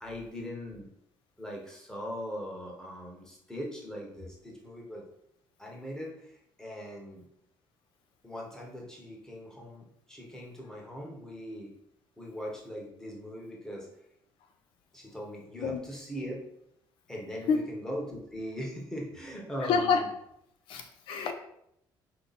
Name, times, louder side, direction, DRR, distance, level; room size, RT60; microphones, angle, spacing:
voice 1, 0.0-0.9 1.4-5.1 5.6-6.3 6.6-7.3 8.2-11.7 12.2-13.9 14.9-16.4 17.1-20.1, equal, 5° left, -2 dB, 1.0 m, -40 dB
voice 2, 19.6-20.0 20.7-21.3, left 5 dB, 80° left, 5 dB, 0.5 m, -27 dB
4.4 x 2.8 x 4.0 m, 0.76 s
cardioid pair, 145°, 9 cm